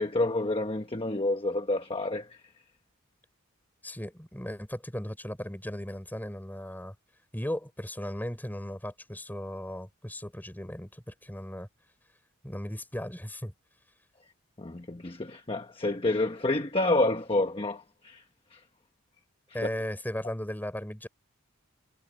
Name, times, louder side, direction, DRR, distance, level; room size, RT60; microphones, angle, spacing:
voice 1, 0.0-2.4 14.6-18.2 18.5-18.6, left 2 dB, 25° left, 1.1 m, -29 dB
voice 2, 3.8-6.9 7.3-11.7 12.4-13.5 19.5-21.1, equal, 10° left, 4.1 m, -36 dB
head